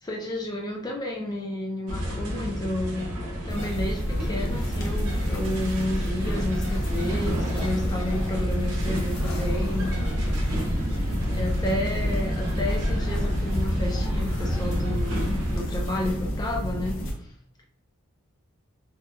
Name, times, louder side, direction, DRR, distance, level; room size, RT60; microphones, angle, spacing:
voice 1, 0.0-3.1 3.4-9.9 11.3-17.3, left 1 dB, 20° left, -1 dB, 0.4 m, -31 dB
sound 1, 1.9-15.6, equal, 90° right, 0.7 m, -30 dB
sound 2, 3.5-17.1, equal, 65° left, 0.6 m, -29 dB
2.9 x 2.3 x 2.2 m, 0.69 s
head